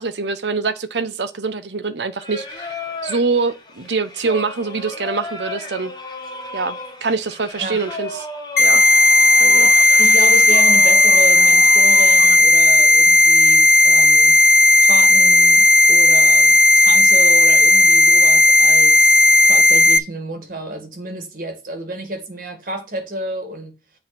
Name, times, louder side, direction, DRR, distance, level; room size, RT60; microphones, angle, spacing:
voice 1, 0.0-2.7 3.0-5.9 6.5-8.1 8.6-8.9 9.4-9.7, right 4 dB, 85° right, 0.9 m, -24 dB
Singing, 2.2-12.4, left 2 dB, 25° left, 1.2 m, -34 dB
sound 1, 8.6-20.0, left 1 dB, 50° left, 0.5 m, -12 dB
voice 2, 10.0-14.4 14.8-23.7, right 1 dB, 50° right, 2.0 m, -30 dB
7.8 x 3.9 x 6.0 m
head